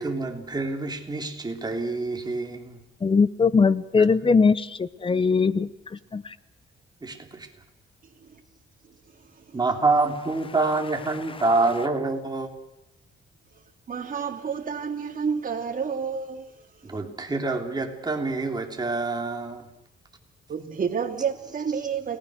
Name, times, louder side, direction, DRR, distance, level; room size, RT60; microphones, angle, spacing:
voice 1, 0.0-2.8 4.0-4.1 7.0-7.6 9.5-12.5 16.8-19.7, right 3 dB, 20° right, 3.5 m, -27 dB
voice 2, 3.0-5.7 6.1-6.2, left 5 dB, 25° left, 0.9 m, -20 dB
voice 3, 13.9-16.4 16.7-16.9 20.5-22.2, right 6 dB, 45° right, 3.0 m, -30 dB
29.5 x 19.5 x 6.6 m
cardioid pair, 125°, 20 cm